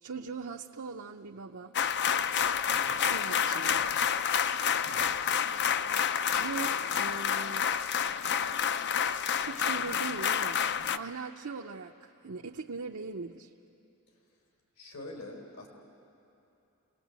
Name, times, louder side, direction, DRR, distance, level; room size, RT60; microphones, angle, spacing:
voice 1, 0.0-1.8 3.1-3.9 6.4-7.7 8.7-8.9 9.3-13.5, right 4 dB, 70° right, 2 dB, 0.7 m, -40 dB
sound 1, 1.7-11.0, left 8 dB, 50° left, 0.5 m, -29 dB
voice 2, 2.7-3.1 4.8-5.1 14.8-15.7, left 2 dB, 80° left, 1 dB, 4.2 m, -45 dB
27.5 x 19.0 x 8.2 m, 2.8 s
head